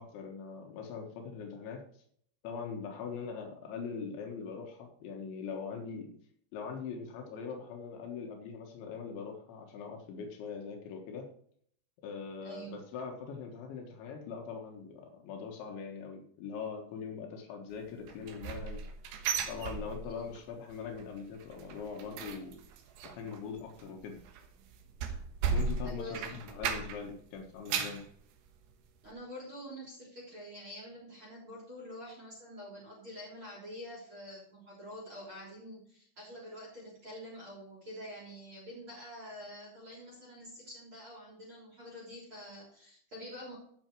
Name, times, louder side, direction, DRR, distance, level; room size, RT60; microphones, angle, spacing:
voice 1, 0.0-1.8 2.4-6.1 6.5-11.3 12.0-18.8 19.5-22.6 23.0-24.2 25.5-28.0, left 6 dB, 80° left, 2 dB, 3.8 m, -42 dB
voice 2, 12.4-12.8 20.0-20.3 24.6-24.7 25.8-26.4 29.0-43.6, equal, 30° right, -2 dB, 3.9 m, -47 dB
sound 1, 18.1-20.4 20.7-21.1 21.3-27.1 27.5-28.1 28.6-28.7 29.1-29.2, right 5 dB, 75° right, 3.2 m, -36 dB
15.0 x 6.0 x 4.6 m, 0.62 s
omnidirectional pair, 5.2 m